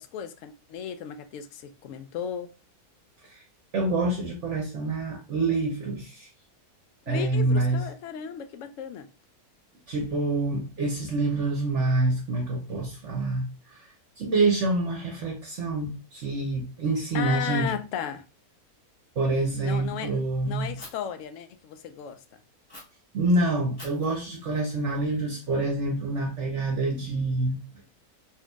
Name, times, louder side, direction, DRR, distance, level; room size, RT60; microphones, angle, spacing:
voice 1, 0.0-2.5 7.1-9.1 17.1-18.2 19.6-22.2, left 8 dB, 70° left, 0.8 m, -35 dB
voice 2, 3.7-6.3 7.1-7.8 9.9-13.9 14.2-17.7 19.2-20.7 23.1-27.8, right 2 dB, 55° right, 0.9 m, -27 dB
Fire, 20.8-20.9 22.7-22.8 23.8-25.7, left 1 dB, 15° left, 1.1 m, -49 dB
4.5 x 2.8 x 2.2 m
omnidirectional pair, 1.7 m